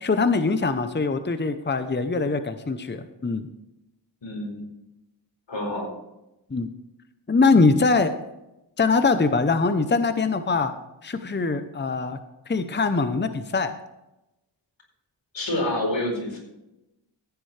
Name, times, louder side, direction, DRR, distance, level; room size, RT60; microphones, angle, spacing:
voice 1, 0.0-3.5 6.5-6.7 7.3-8.1 8.8-10.7 11.0-12.2 12.5-13.7, left 4 dB, 25° left, 9 dB, 0.8 m, -22 dB
voice 2, 4.2-4.7 5.5-5.9 15.3-16.4, left 1 dB, 85° left, 0 dB, 4.4 m, -27 dB
14.5 x 9.9 x 3.3 m, 0.92 s
wide cardioid pair, 70°, 44 cm